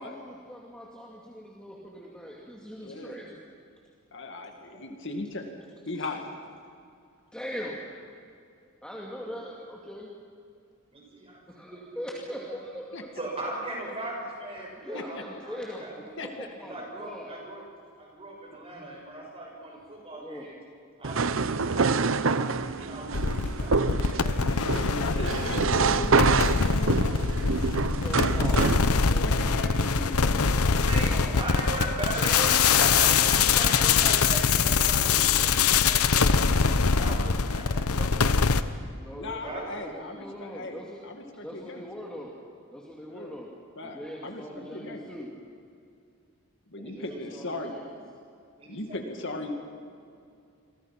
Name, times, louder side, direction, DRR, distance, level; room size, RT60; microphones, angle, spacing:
voice 1, 0.0-3.4 6.0-6.1 7.3-7.8 8.8-10.1 11.5-13.1 13.4-13.5 14.8-17.4 18.7-19.0 20.1-20.5 24.7-25.6 28.0-30.5 31.1-31.9 32.2-32.3 39.0-41.0 41.3-42.3 42.7-43.5 43.8-45.3 46.9-47.8, equal, 5° left, -3 dB, 2.3 m, -41 dB
voice 2, 2.8-3.2 4.1-5.5 5.9-6.3 12.9-13.0 14.9-15.2 16.2-16.5 18.5-18.6 24.7-27.2 27.5-27.6 28.1-31.1 39.1-41.8 43.1-43.4 43.8-45.0 46.7-47.8 48.7-49.5, left 2 dB, 55° left, 4 dB, 2.2 m, -38 dB
voice 3, 10.9-12.0 12.3-12.6 13.2-16.2 16.6-17.6 18.0-20.6 21.0-22.0 22.3-24.7 25.0-25.5 30.2-38.9 39.4-39.7 46.8-47.0 47.4-47.5 48.6-49.0 49.5-49.6, right 1 dB, 25° right, -1 dB, 6.5 m, -38 dB
sound 1, 21.0-28.9, right 4 dB, 60° right, 0.7 m, -26 dB
sound 2, 23.1-38.6, left 5 dB, 85° left, 1.0 m, -23 dB
29.0 x 23.0 x 6.0 m, 2.5 s
head